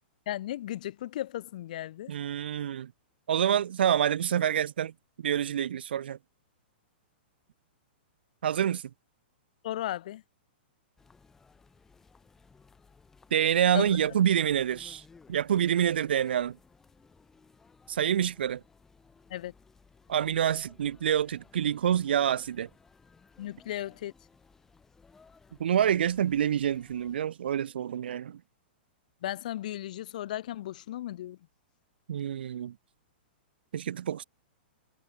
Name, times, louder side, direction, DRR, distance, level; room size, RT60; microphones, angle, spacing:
voice 1, 0.3-2.1 9.6-10.2 13.7-14.0 19.3-19.5 23.4-24.1 29.2-31.4, left 13 dB, 45° left, 1.2 m, -35 dB
voice 2, 2.1-2.9 3.3-4.9 5.2-6.2 8.4-8.8 13.3-15.0 15.3-16.6 17.9-18.6 20.1-22.7 25.6-28.4 32.1-32.7 33.7-34.2, right 9 dB, 70° right, 1.1 m, -27 dB
sound 1, 11.0-27.2, left 4 dB, 5° left, 7.1 m, -59 dB
hypercardioid pair, 175°, 6 cm